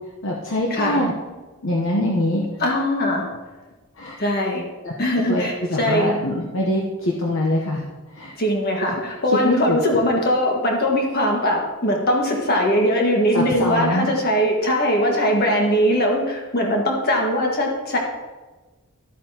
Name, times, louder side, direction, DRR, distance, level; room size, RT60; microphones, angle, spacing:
voice 1, 0.2-1.1 1.6-2.4 4.0-4.2 4.8-4.9 5.3-5.4 5.7-8.3 9.4-9.8 13.3-14.1, left 1 dB, 60° left, -2 dB, 1.0 m, -23 dB
voice 2, 2.6-3.3 4.2-4.6 5.0-6.2 8.4-18.0, equal, 45° left, 0 dB, 1.8 m, -21 dB
12.0 x 8.4 x 2.9 m, 1.2 s
head